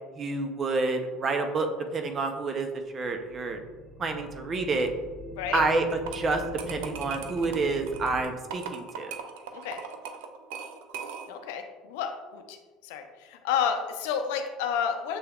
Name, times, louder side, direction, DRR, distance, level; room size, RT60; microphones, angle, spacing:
voice 1, 0.1-3.6 4.0-4.9 5.5-9.1, right 3 dB, 40° right, 6 dB, 0.6 m, -28 dB
sound 1, 3.0-8.2, left 1 dB, 15° right, 1.2 m, -42 dB
sound 2, 5.9-11.5, right 6 dB, 80° right, 0.4 m, -40 dB
voice 2, 11.3-12.6 12.8-15.2, left 7 dB, 80° left, 6 dB, 0.5 m, -30 dB
6.8 x 3.3 x 2.3 m, 1.3 s
supercardioid pair, 85°, 0 cm